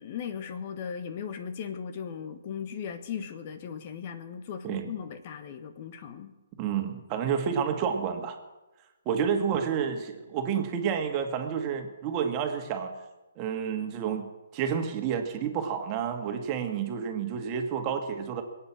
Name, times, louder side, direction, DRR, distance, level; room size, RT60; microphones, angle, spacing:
voice 1, 0.0-6.3, left 7 dB, 40° left, 9 dB, 1.3 m, -37 dB
voice 2, 6.6-8.4 9.1-12.9 13.4-18.4, right 7 dB, 30° right, 5 dB, 2.0 m, -30 dB
22.0 x 8.8 x 7.5 m, 1.1 s
figure-of-eight pair, 135°, 0 cm